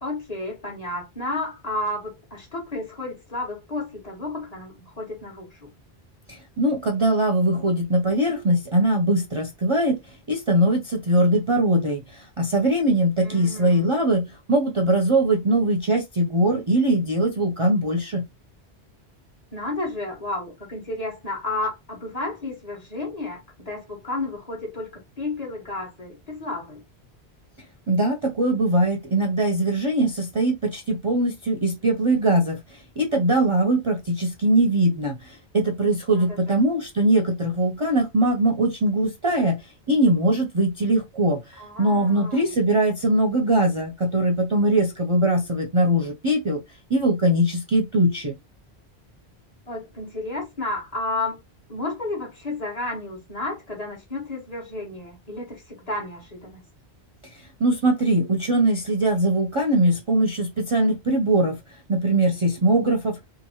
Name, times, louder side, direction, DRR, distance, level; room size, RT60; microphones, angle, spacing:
voice 1, 0.0-5.7 13.2-14.1 19.5-26.8 36.1-36.7 41.6-42.5 49.7-51.4 51.7-56.6, left 2 dB, 40° left, 1.2 m, -32 dB
voice 2, 6.3-10.0 10.3-18.2 27.9-32.6 33.0-39.6 39.9-41.4 41.8-46.6 46.9-48.3 57.6-61.5 61.9-63.2, right 1 dB, 40° right, 0.5 m, -21 dB
2.9 x 2.6 x 2.8 m
omnidirectional pair, 1.1 m